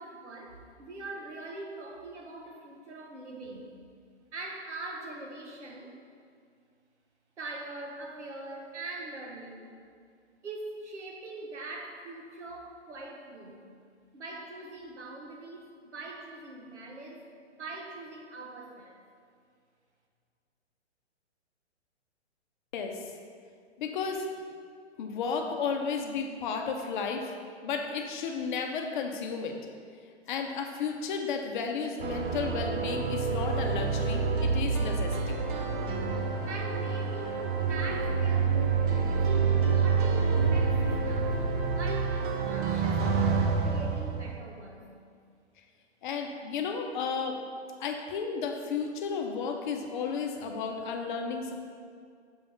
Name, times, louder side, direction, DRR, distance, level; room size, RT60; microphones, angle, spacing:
voice 1, 0.0-3.7 4.3-5.9 7.4-9.7 10.4-13.6 14.1-17.2 17.5-19.0 36.5-39.2 39.6-41.4 41.7-44.9, right 2 dB, 80° right, 0 dB, 1.4 m, -42 dB
voice 2, 23.8-24.3 25.0-27.3 27.6-29.6 30.3-35.4 46.0-47.4 47.8-51.5, left 5 dB, 45° left, 4 dB, 0.7 m, -33 dB
sound 1, 32.0-44.4, right 5 dB, 50° right, 0.8 m, -27 dB
7.0 x 3.4 x 5.3 m, 2.2 s
hypercardioid pair, 125°, 34 cm